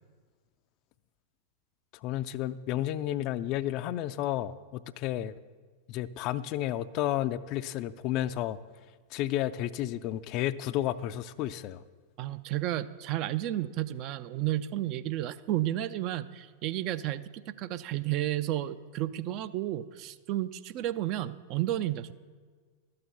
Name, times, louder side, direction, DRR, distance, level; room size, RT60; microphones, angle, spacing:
voice 1, 2.0-5.3 5.9-8.6 9.1-11.8, left 13 dB, 40° left, 14 dB, 0.4 m, -32 dB
voice 2, 12.2-22.1, right 13 dB, 40° right, 13 dB, 0.4 m, -32 dB
12.5 x 6.6 x 7.0 m, 1.5 s
figure-of-eight pair, 90°, 0 cm